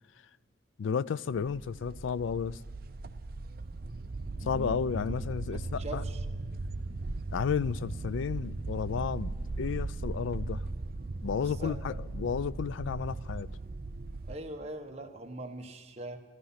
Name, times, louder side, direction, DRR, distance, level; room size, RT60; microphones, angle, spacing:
voice 1, 0.8-2.6 4.4-6.0 7.3-10.6 11.2-13.5, left 6 dB, 80° left, 0.4 m, -32 dB
sound 1, 1.3-14.4, right 2 dB, 50° right, 0.6 m, -38 dB
voice 2, 4.4-5.1 5.5-6.3 11.4-12.0 14.2-16.2, right 2 dB, 35° right, 1.2 m, -42 dB
15.0 x 12.5 x 5.8 m
head